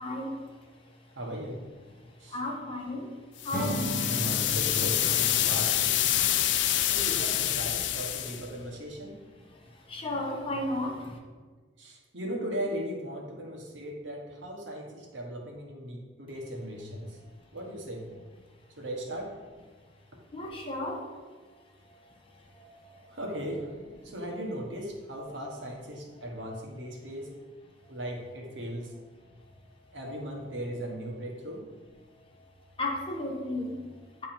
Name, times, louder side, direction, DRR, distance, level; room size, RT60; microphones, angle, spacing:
voice 1, 0.0-1.2 2.0-4.1 6.1-7.2 9.4-11.2 17.0-17.1 20.3-21.2 21.5-21.6 21.9-23.2 24.0-24.1 26.2-26.6 32.8-34.3, left 1 dB, 30° left, 0 dB, 1.1 m, -36 dB
voice 2, 1.1-1.6 2.2-2.4 4.0-6.0 6.9-9.2 11.8-17.2 17.5-18.1 18.8-19.3 23.1-27.3 27.9-28.9 29.9-31.6, equal, 80° right, 0 dB, 1.4 m, -37 dB
sound 1, 3.4-8.4, left 12 dB, 70° left, 0.4 m, -27 dB
Acoustic guitar / Strum, 3.5-6.8, right 1 dB, 45° right, 0.9 m, -36 dB
8.9 x 3.7 x 4.4 m, 1.4 s
head